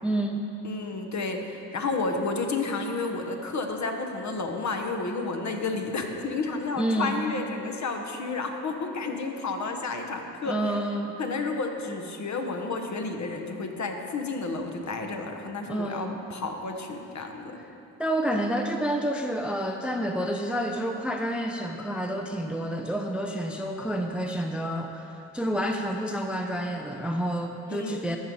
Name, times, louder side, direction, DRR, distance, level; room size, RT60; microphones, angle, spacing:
voice 1, 0.0-0.5 6.8-7.2 10.4-11.2 15.7-16.2 18.0-28.2, right 1 dB, 5° right, 4 dB, 0.5 m, -29 dB
voice 2, 0.6-10.6 11.2-17.6 27.7-28.2, left 3 dB, 45° left, 4 dB, 1.2 m, -31 dB
14.0 x 4.8 x 5.4 m, 2.8 s
hypercardioid pair, 55°, 40 cm